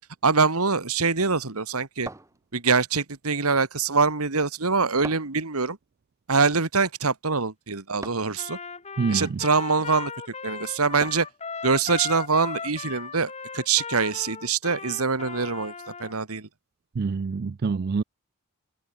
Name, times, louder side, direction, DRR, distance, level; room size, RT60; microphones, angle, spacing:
voice 1, 0.2-2.1 2.5-5.8 6.3-8.6 9.1-10.1 10.4-11.3 11.6-15.7 16.0-16.5, right 4 dB, 80° right, 1.9 m, -24 dB
sound 1, 2.1-2.9 5.0-5.5 8.0-8.4 11.0-11.4, right 2 dB, 15° right, 1.1 m, -41 dB
Trumpet, 8.4-16.1, left 5 dB, 30° left, 1.7 m, -37 dB
voice 2, 9.0-9.4 17.0-18.0, right 4 dB, 45° right, 0.4 m, -26 dB
head